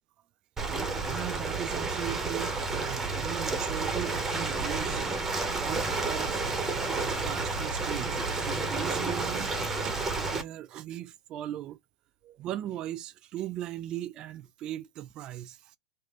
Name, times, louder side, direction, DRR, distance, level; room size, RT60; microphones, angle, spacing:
Ocean, 0.6-10.4, right 3 dB, 10° right, 0.8 m, -31 dB
voice 1, 1.0-5.3 5.5-6.6 6.9-11.8 12.2-15.8, right 12 dB, 35° right, 0.3 m, -38 dB
3.2 x 2.5 x 3.0 m
hypercardioid pair, 125°, 2 cm